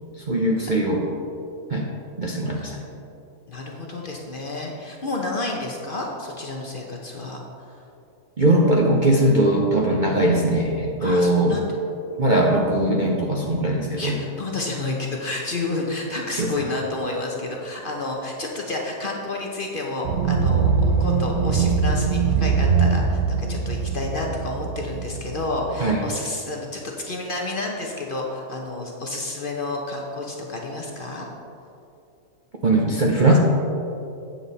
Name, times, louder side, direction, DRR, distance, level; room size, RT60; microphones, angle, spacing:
voice 1, 0.3-1.0 1.7-1.9 2.2-2.8 8.4-11.6 12.2-14.1 16.4-16.7 25.8-26.0 32.6-33.4, right 1 dB, 45° right, -2 dB, 0.6 m, -20 dB
voice 2, 2.5-2.9 3.5-7.4 7.7-7.8 11.0-11.7 14.0-31.3, left 2 dB, 45° left, 0 dB, 0.8 m, -30 dB
sound 1, 20.0-26.0, right 5 dB, 75° right, 1.2 m, -22 dB
8.8 x 7.1 x 4.1 m, 2.7 s
omnidirectional pair, 1.6 m